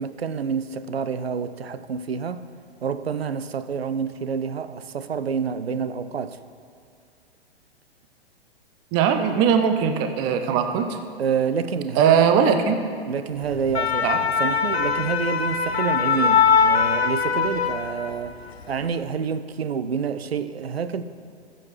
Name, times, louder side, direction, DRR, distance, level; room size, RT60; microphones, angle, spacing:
voice 1, 0.0-2.5 2.8-6.4 11.2-12.3 13.1-18.4 18.7-21.0, right 6 dB, 75° right, 0.5 m, -28 dB
voice 2, 8.9-11.0 12.0-12.8 14.0-14.2, right 7 dB, 15° right, 0.4 m, -20 dB
sound 1, 13.5-18.3 18.6-18.9, left 6 dB, 80° left, 0.6 m, -22 dB
14.5 x 7.6 x 3.2 m
figure-of-eight pair, 105°, 31 cm